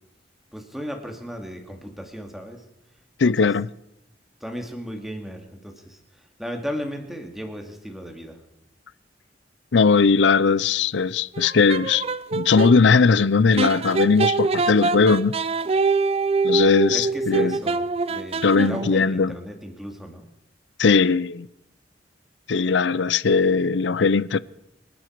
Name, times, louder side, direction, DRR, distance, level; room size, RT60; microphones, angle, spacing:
voice 1, 0.5-2.6 3.2-3.5 4.4-8.4 16.9-20.3, equal, ahead, 2.3 m, -35 dB
voice 2, 3.2-3.7 9.7-12.0 12.3-15.4 16.4-17.6 18.4-19.4 20.8-21.5 22.5-24.4, left 5 dB, 80° left, 0.6 m, -19 dB
sound 1, 11.3-12.8 13.6-19.0, right 4 dB, 35° right, 0.5 m, -24 dB
25.5 x 11.5 x 4.7 m
head